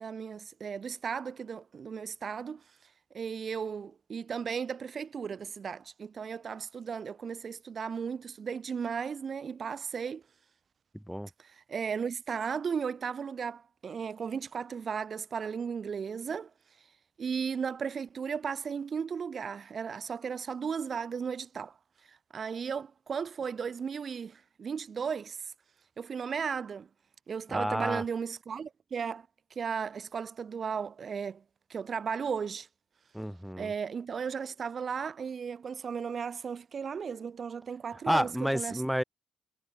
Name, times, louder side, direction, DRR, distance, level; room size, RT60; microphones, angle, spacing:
voice 1, 0.0-2.6 3.1-10.2 11.4-16.5 17.2-21.8 22.1-25.5 26.0-26.9 27.3-31.4 31.7-32.7 33.6-38.8, right 6 dB, 50° right, 1.4 m, -35 dB
voice 2, 27.5-28.0 33.1-33.7 38.1-39.0, equal, ahead, 0.4 m, -30 dB
cardioid pair, 75°, 0 cm